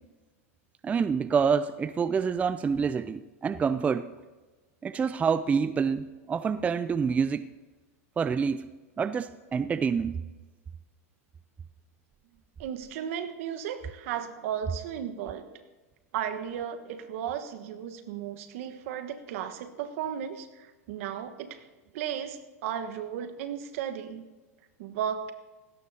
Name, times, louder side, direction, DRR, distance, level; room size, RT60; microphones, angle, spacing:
voice 1, 0.8-4.1 4.8-7.5 8.2-8.7 9.0-10.2, right 6 dB, 15° right, 14 dB, 0.4 m, -27 dB
voice 2, 12.6-15.5 16.1-21.6 21.9-24.3 24.8-25.3, right 9 dB, 65° right, 7 dB, 1.3 m, -35 dB
18.5 x 16.5 x 2.8 m, 1.2 s
hypercardioid pair, 115°, 8 cm